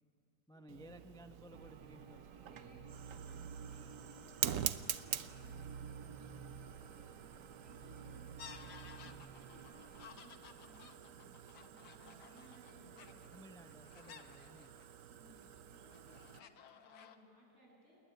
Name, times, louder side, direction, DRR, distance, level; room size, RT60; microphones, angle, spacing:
voice 1, 0.5-2.7 9.1-9.3 13.3-14.8, equal, 5° left, 7 dB, 0.4 m, -58 dB
Fire, 0.7-16.4, right 9 dB, 60° right, 1.1 m, -46 dB
sound 1, 1.5-10.1, right 6 dB, 85° right, 1.9 m, -52 dB
voice 2, 2.5-8.3 9.0-13.3 15.0-18.0, equal, 40° right, -3 dB, 8.5 m, -64 dB
sound 2, 8.4-15.0 15.5-17.2, left 7 dB, 80° left, 1.8 m, -56 dB
30.0 x 20.5 x 9.3 m, 2.4 s
omnidirectional pair, 1.8 m